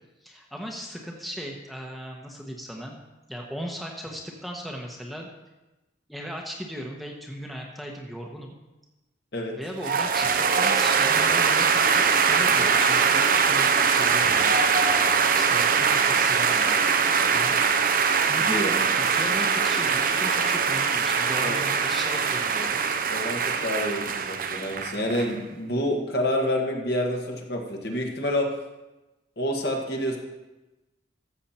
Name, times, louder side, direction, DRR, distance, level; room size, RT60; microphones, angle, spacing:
voice 1, 0.2-3.0 3.3-5.3 6.1-8.5 9.6-10.3 10.6-14.6 15.3-16.8 17.3-17.6 17.9-18.0 18.3-22.8, equal, ahead, -1 dB, 1.1 m, -37 dB
sound 1, 9.8-25.3, right 6 dB, 50° right, 0.7 m, -22 dB
voice 2, 23.1-28.5 29.4-30.2, left 1 dB, 55° left, 1 dB, 1.6 m, -28 dB
14.0 x 7.4 x 4.4 m, 1.0 s
head